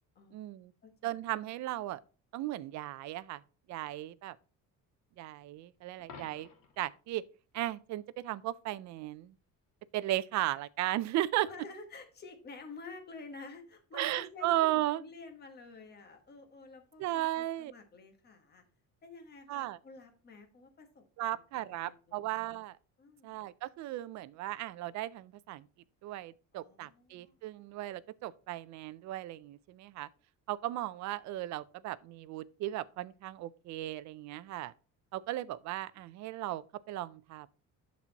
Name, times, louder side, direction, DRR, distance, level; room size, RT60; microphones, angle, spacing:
voice 1, 0.3-0.7 1.0-2.0 2.3-3.4 3.7-4.4 5.2-6.5 6.8-7.2 7.5-9.3 9.9-11.5 13.9-15.0 17.0-17.7 19.5-19.8 21.2-22.8 23.2-25.7 26.0-30.1 30.5-34.7 35.1-37.5, right 15 dB, 60° right, 0.4 m, -36 dB
voice 2, 0.8-1.2 11.4-18.6 19.0-22.3 23.0-23.4 26.5-27.3, left 3 dB, 30° left, 1.2 m, -50 dB
Coin (dropping), 6.0-6.9 12.9-13.1, left 5 dB, 85° left, 2.1 m, -52 dB
11.5 x 4.2 x 2.9 m
cardioid pair, 175°, 33 cm